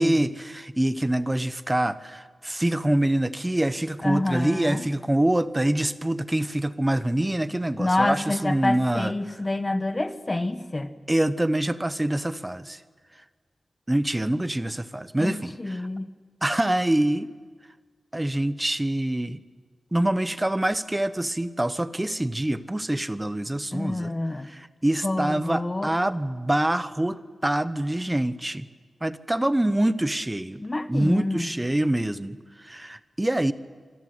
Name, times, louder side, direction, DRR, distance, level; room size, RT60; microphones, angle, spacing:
voice 1, 0.0-9.1 11.1-12.8 13.9-15.9 16.4-17.3 18.1-19.4 19.9-24.1 24.4-28.7 29.0-30.6 30.9-33.5, right 1 dB, 15° right, 13 dB, 0.9 m, -25 dB
voice 2, 4.0-4.9 7.8-10.9 15.2-16.1 23.7-24.5 25.0-25.9 30.6-31.5, left 2 dB, 25° left, 10 dB, 1.3 m, -27 dB
26.5 x 25.0 x 7.9 m, 1.5 s
wide cardioid pair, 130°, 0 cm